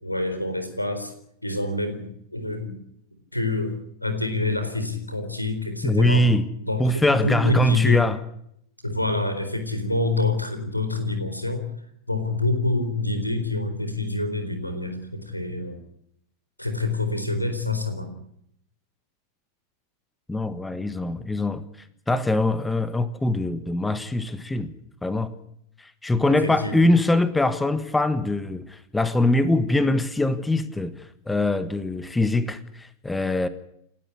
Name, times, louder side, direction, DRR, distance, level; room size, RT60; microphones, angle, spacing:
voice 1, 0.0-1.1 1.4-2.8 3.3-6.3 6.6-8.1 8.8-11.6 12.1-15.8 16.6-18.1 26.3-26.8, left 2 dB, 85° left, 8 dB, 4.2 m, -27 dB
voice 2, 5.8-6.4 6.8-8.2 20.3-21.6 22.1-24.7 25.0-25.3 25.8-33.5, left 2 dB, 10° left, 13 dB, 1.5 m, -23 dB
29.5 x 12.5 x 9.9 m, 0.74 s
figure-of-eight pair, 90°, 0 cm